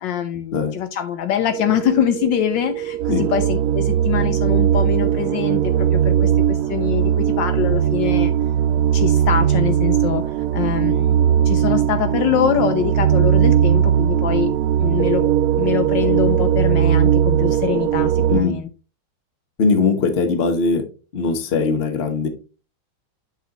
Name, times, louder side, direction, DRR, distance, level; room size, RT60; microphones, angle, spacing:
voice 1, 0.0-8.3 8.9-14.5 14.8-15.2 15.5-18.7, left 9 dB, 75° left, 10 dB, 1.2 m, -24 dB
sound 1, 1.5-18.4, right 10 dB, 85° right, 1.4 m, -19 dB
voice 2, 19.6-20.8 21.1-22.3, left 4 dB, 40° left, 8 dB, 0.9 m, -20 dB
7.8 x 5.5 x 2.9 m, 0.34 s
omnidirectional pair, 2.2 m